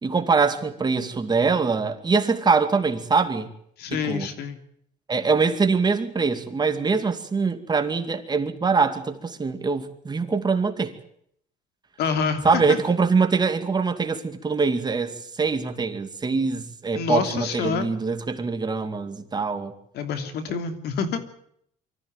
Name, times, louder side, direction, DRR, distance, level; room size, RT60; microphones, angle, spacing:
voice 1, 0.0-3.5 3.9-4.3 5.1-11.0 12.4-19.7, right 4 dB, 25° right, 2.4 m, -23 dB
voice 2, 3.8-4.6 12.0-12.8 16.9-17.9 19.9-21.2, left 6 dB, 75° left, 3.0 m, -27 dB
24.0 x 14.5 x 9.1 m
cardioid pair, 110°, 17 cm